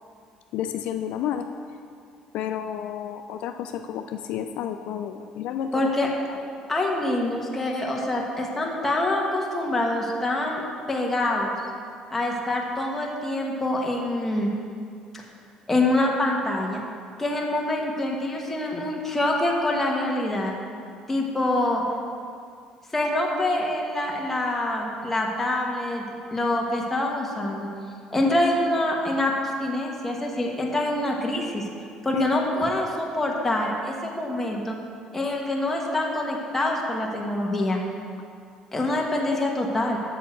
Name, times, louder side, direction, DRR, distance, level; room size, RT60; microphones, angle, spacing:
voice 1, 0.5-1.5 2.3-5.9 6.3-6.4 32.1-32.5, left 9 dB, 75° left, 7 dB, 0.3 m, -31 dB
voice 2, 5.7-6.1 6.7-10.6 10.9-11.5 12.1-14.5 15.1-15.2 15.7-16.8 17.2-20.5 21.1-21.8 22.9-26.0 26.3-27.7 28.1-29.3 29.6-31.7 32.0-34.8 35.1-37.8 38.7-40.0, left 1 dB, 10° left, -1 dB, 1.1 m, -25 dB
7.3 x 6.9 x 4.4 m, 2.3 s
cardioid pair, 130°, 2 cm